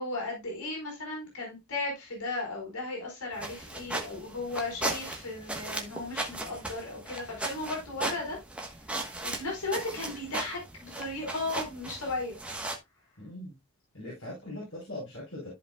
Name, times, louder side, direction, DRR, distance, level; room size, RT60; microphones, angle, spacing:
voice 1, 0.0-8.4 9.2-12.4, left 2 dB, 85° left, 4.5 m, -35 dB
sound 1, 3.3-12.8, right 2 dB, 5° right, 1.2 m, -37 dB
voice 2, 13.2-13.5 13.9-15.5, left 1 dB, 60° left, 5.0 m, -40 dB
14.0 x 5.2 x 2.3 m
head